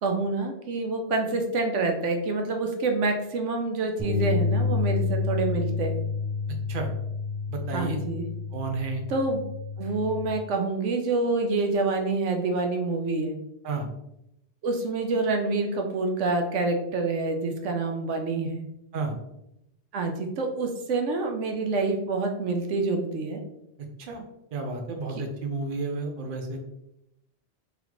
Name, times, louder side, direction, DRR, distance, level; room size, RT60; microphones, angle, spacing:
voice 1, 0.0-6.0 7.7-8.2 9.1-9.5 9.8-13.3 14.6-18.6 19.9-23.4, right 3 dB, 80° right, 3 dB, 1.0 m, -27 dB
sound 1, 4.0-10.3, left 5 dB, 15° right, 1.0 m, -29 dB
voice 2, 7.5-8.0 8.5-9.0 13.6-13.9 18.9-19.1 24.0-24.2 24.5-26.6, right 3 dB, 50° right, 3 dB, 0.8 m, -31 dB
3.7 x 3.5 x 3.0 m, 0.81 s
omnidirectional pair, 1.2 m